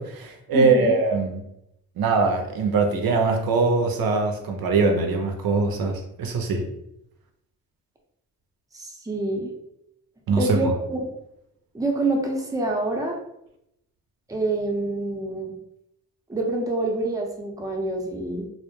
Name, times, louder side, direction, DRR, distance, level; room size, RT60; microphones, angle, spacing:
voice 1, 0.0-1.4 2.0-6.6 10.3-10.7, right 4 dB, 70° right, 3 dB, 0.5 m, -22 dB
voice 2, 0.5-1.0 8.7-9.5 10.4-11.0 11.7-13.2 14.3-15.5 16.3-18.5, right 2 dB, 10° right, 1 dB, 0.5 m, -26 dB
2.1 x 2.0 x 3.0 m, 0.81 s
cardioid pair, 60°, 37 cm